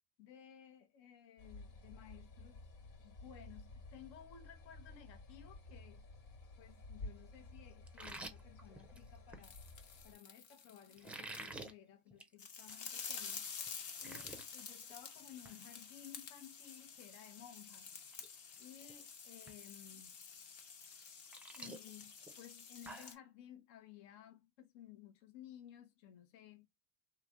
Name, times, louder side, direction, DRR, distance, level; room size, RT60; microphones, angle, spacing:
voice 1, 0.2-2.7 3.0-6.1 6.6-9.6 10.0-13.5 14.0-18.0 18.6-20.2 21.5-26.7, left 10 dB, 65° left, 1.0 m, -57 dB
sound 1, 1.4-10.1, left 2 dB, 85° left, 2.2 m, -53 dB
sound 2, 7.9-9.5 11.0-11.7 12.1-12.3 12.7-12.8 13.3-13.4 13.7-14.5 14.8-15.1 15.4-15.6 17.4-17.5 18.0-18.3 18.6-19.0 19.5-19.6 20.9-23.2, right 2 dB, 5° right, 0.4 m, -50 dB
sound 3, 9.4-11.6 12.4-23.1, left 6 dB, 40° left, 0.9 m, -50 dB
3.2 x 3.0 x 2.4 m
supercardioid pair, 115°, 48 cm